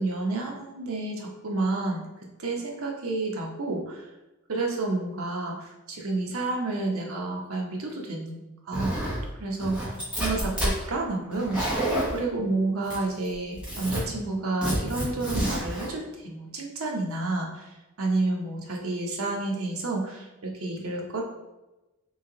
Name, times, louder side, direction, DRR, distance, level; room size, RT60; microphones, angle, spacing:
voice 1, 0.0-2.1 2.4-4.0 4.5-8.9 9.4-11.6 12.1-17.7 18.0-21.2, right 2 dB, 85° right, 0 dB, 0.8 m, -30 dB
Zipper (clothing), 8.7-9.2 9.6-10.8 11.3-12.2 12.9-13.3 13.5-14.0 14.6-15.9, right 1 dB, 5° right, 1.1 m, -28 dB
3.1 x 2.7 x 3.7 m, 1.0 s
head